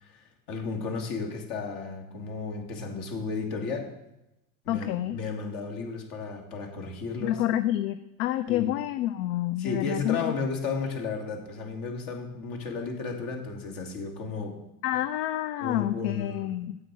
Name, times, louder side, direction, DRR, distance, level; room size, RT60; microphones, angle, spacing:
voice 1, 0.0-3.9 4.6-7.4 8.5-8.7 9.6-14.5 15.6-16.5, left 4 dB, 55° left, 2 dB, 2.4 m, -33 dB
voice 2, 4.7-5.2 7.2-10.2 14.8-16.8, left 13 dB, 70° left, 12 dB, 0.6 m, -28 dB
8.1 x 7.5 x 4.8 m, 0.89 s
supercardioid pair, 105°, 41 cm